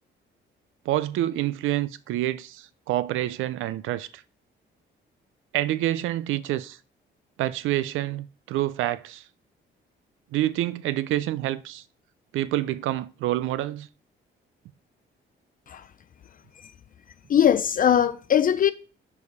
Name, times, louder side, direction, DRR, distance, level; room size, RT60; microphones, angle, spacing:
voice 1, 0.9-4.2 5.5-6.8 7.4-9.2 10.3-11.8 12.3-13.9, right 14 dB, 85° right, 0.5 m, -27 dB
voice 2, 17.3-18.7, left 9 dB, 45° left, 0.4 m, -20 dB
4.8 x 4.8 x 5.4 m
cardioid pair, 90°, 20 cm